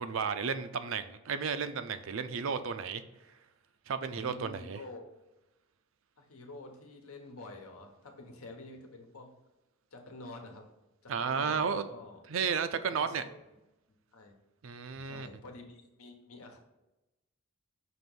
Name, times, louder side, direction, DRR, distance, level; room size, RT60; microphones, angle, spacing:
voice 1, 0.0-3.0 3.9-4.8 11.1-11.9 12.3-13.2 14.6-15.3, right 6 dB, 65° right, 10 dB, 0.5 m, -33 dB
voice 2, 4.1-5.0 6.2-9.3 9.9-10.6 11.0-12.2 13.0-13.4 13.9-14.4 15.0-16.6, left 2 dB, 85° left, 3 dB, 1.1 m, -48 dB
5.9 x 3.0 x 5.4 m, 0.97 s
head